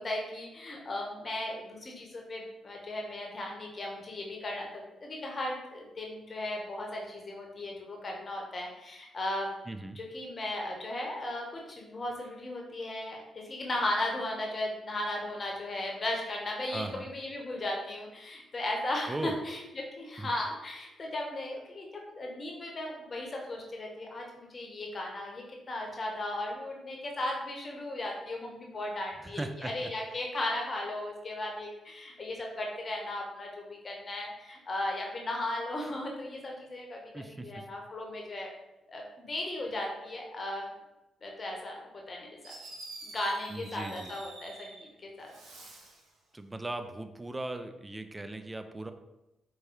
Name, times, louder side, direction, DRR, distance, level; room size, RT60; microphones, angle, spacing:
voice 1, 0.0-9.5 10.0-37.0 37.3-38.5 38.9-40.7 41.2-42.4 43.0-44.7 45.0-45.3, left 1 dB, 45° left, 0 dB, 0.8 m, -36 dB
voice 2, 9.7-10.0 16.7-17.1 19.1-19.4 20.2-20.3 29.2-29.9 37.1-37.6 43.5-44.2 46.3-48.9, right 2 dB, 20° right, 8 dB, 0.4 m, -38 dB
Fireworks, 42.0-42.1 42.4-44.9 45.2-46.1, right 2 dB, 75° right, 0.7 m, -47 dB
4.5 x 2.2 x 3.0 m, 0.96 s
hypercardioid pair, 45°, 0 cm